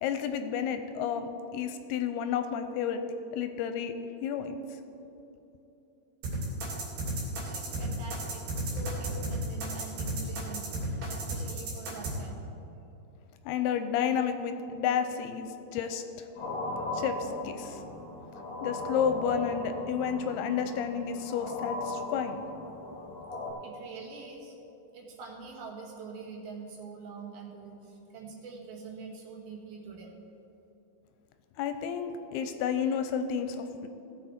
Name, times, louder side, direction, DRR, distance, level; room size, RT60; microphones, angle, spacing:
voice 1, 0.0-3.0 3.3-3.9 4.2-4.6 13.5-16.3 16.9-17.8 18.6-22.4 31.6-33.9, left 7 dB, 85° left, 8 dB, 2.5 m, -31 dB
sound 1, 6.2-12.1, right 2 dB, 90° right, 5.1 m, -33 dB
voice 2, 7.4-12.4 23.6-24.5 24.9-30.1, right 4 dB, 70° right, -1 dB, 3.1 m, -44 dB
sound 2, 16.4-23.5, left 2 dB, 35° left, 2.1 m, -37 dB
17.0 x 7.8 x 4.3 m, 2.9 s
omnidirectional pair, 4.7 m